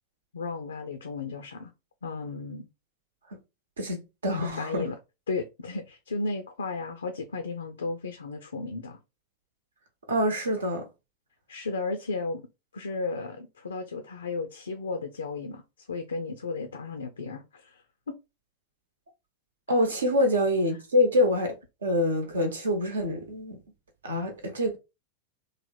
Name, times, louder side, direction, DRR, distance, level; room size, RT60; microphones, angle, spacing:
voice 1, 0.3-1.7 2.0-2.7 4.4-5.0 5.3-9.0 11.5-12.4 12.7-15.6 15.9-17.8 18.1-18.2, left 3 dB, 70° left, 0.4 m, -34 dB
voice 2, 4.2-4.9 10.1-10.9 19.7-21.5 21.8-23.6 24.0-24.8, left 1 dB, 70° right, 0.9 m, -25 dB
3.2 x 2.1 x 4.1 m
figure-of-eight pair, 90°, 0 cm